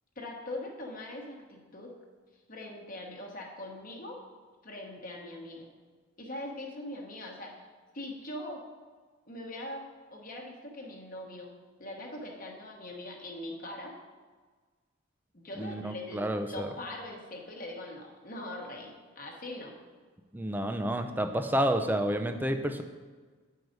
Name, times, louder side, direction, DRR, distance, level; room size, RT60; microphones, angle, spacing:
voice 1, 0.2-1.9 2.5-4.2 4.6-5.7 6.2-7.7 7.9-8.6 9.3-9.8 10.1-11.5 11.8-13.9 15.3-19.7, left 1 dB, 40° left, 0 dB, 1.1 m, -41 dB
voice 2, 15.6-16.7 20.3-22.8, right 1 dB, 10° right, 6 dB, 0.4 m, -30 dB
9.1 x 4.7 x 5.2 m, 1.4 s
head